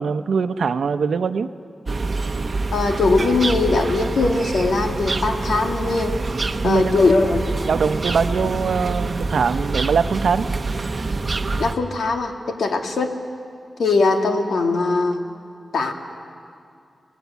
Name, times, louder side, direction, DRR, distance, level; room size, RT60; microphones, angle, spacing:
voice 1, 0.0-1.5 6.6-6.9 7.6-10.5, right 5 dB, 85° right, 10 dB, 0.8 m, -22 dB
sound 1, 1.9-11.7, right 3 dB, 35° right, 0.9 m, -26 dB
voice 2, 2.7-6.1 6.6-7.5 11.6-13.1 13.8-15.2 15.7-15.9, left 3 dB, 80° left, 3 dB, 2.1 m, -20 dB
29.5 x 19.5 x 8.2 m, 2.4 s
wide cardioid pair, 170°, 0 cm